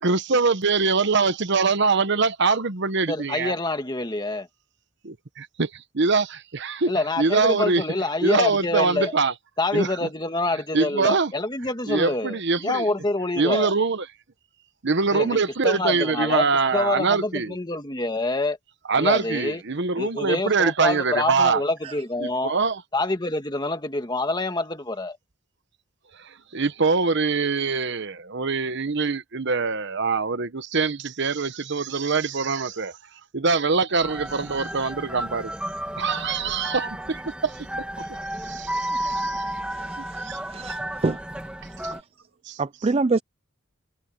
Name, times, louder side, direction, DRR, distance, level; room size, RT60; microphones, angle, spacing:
voice 1, 0.0-3.5 5.0-7.8 8.2-9.3 9.7-10.1 10.7-11.3 11.9-12.8 13.4-14.0 14.8-17.5 18.9-21.6 22.2-22.8 26.1-35.5 36.0-37.7 38.4-39.5 40.0-40.8 41.8-41.9 42.4-42.6, right 4 dB, 60° right, 1.0 m, -24 dB
voice 2, 3.1-4.5 6.9-9.1 9.6-13.7 15.1-16.5 16.7-18.6 19.0-19.6 20.0-22.5 22.9-25.2, left 2 dB, 20° left, 1.9 m, -26 dB
sound 1, 34.0-42.0, right 1 dB, 5° right, 1.9 m, -32 dB
voice 3, 40.5-41.2 42.6-43.2, right 3 dB, 30° right, 0.4 m, -25 dB
head